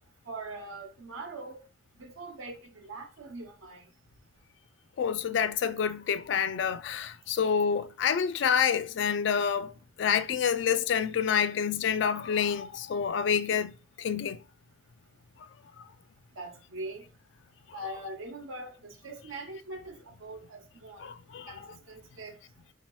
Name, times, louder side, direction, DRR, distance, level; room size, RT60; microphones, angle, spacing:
voice 1, 0.2-1.6 1.9-3.9 16.3-17.0 17.7-21.1 21.5-22.4, right 2 dB, 85° right, 1.0 m, -42 dB
voice 2, 5.0-9.7 10.0-13.7 14.0-14.4 17.7-17.9 21.0-21.8, left 7 dB, 65° left, 0.3 m, -28 dB
4.0 x 2.9 x 3.0 m
head